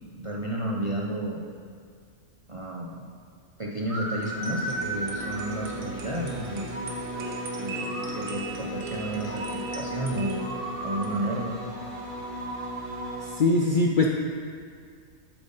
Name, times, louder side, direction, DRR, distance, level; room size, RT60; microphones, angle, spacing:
voice 1, 0.2-1.4 2.5-3.0 3.6-6.7 7.6-10.4 10.8-11.6, right 1 dB, 45° right, -2 dB, 0.4 m, -32 dB
sound 1, 3.9-13.3, right 1 dB, 25° right, 1.0 m, -35 dB
sound 2, 4.1-12.4, right 3 dB, 80° right, 1.4 m, -40 dB
voice 2, 13.2-14.1, left 3 dB, 65° left, 0 dB, 0.5 m, -22 dB
8.0 x 7.3 x 4.0 m, 2.1 s
omnidirectional pair, 1.4 m